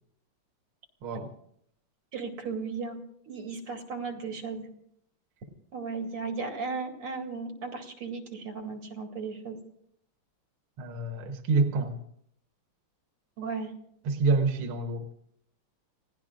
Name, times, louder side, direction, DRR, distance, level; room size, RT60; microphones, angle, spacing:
voice 1, 2.1-3.0 3.3-4.7 5.7-9.6 13.4-13.7, right 4 dB, 90° right, 3 dB, 3.1 m, -35 dB
voice 2, 10.8-12.0 14.0-15.0, right 3 dB, 75° right, 4 dB, 2.0 m, -27 dB
29.5 x 17.5 x 2.5 m, 0.71 s
omnidirectional pair, 2.4 m